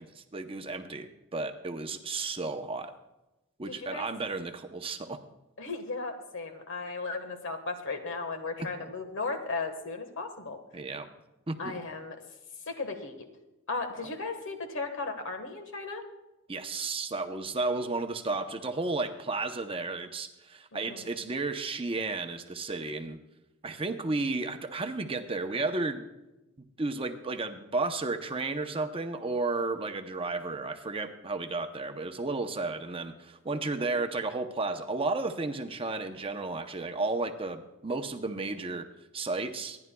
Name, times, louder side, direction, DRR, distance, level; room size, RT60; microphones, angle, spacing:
voice 1, 0.0-2.9 3.6-5.2 8.6-8.9 10.7-11.1 11.5-11.8 16.5-23.2 23.6-26.0 26.8-38.9 39.1-39.8, right 3 dB, 25° right, 6 dB, 0.7 m, -33 dB
voice 2, 3.7-4.1 5.6-10.6 11.6-12.2 12.7-13.2 13.7-16.0 20.7-21.1, left 3 dB, 60° left, 6 dB, 1.4 m, -36 dB
26.5 x 10.5 x 2.3 m, 0.98 s
head